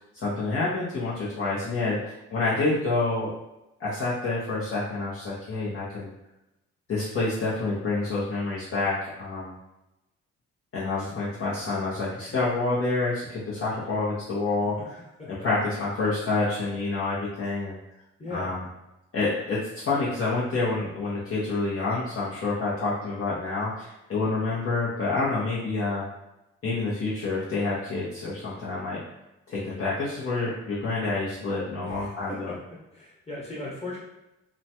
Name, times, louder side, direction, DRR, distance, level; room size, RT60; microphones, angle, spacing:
voice 1, 0.1-3.3 3.8-6.1 6.9-9.5 10.7-14.7 15.3-17.8 18.3-18.6 19.1-26.0 26.6-29.0 29.5-32.5, left 3 dB, 50° left, -8 dB, 0.8 m, -28 dB
voice 2, 18.2-18.5 31.8-32.6 32.9-34.0, left 2 dB, 20° left, -6 dB, 1.3 m, -37 dB
3.0 x 2.2 x 2.8 m, 0.93 s
cardioid pair, 90°, 30 cm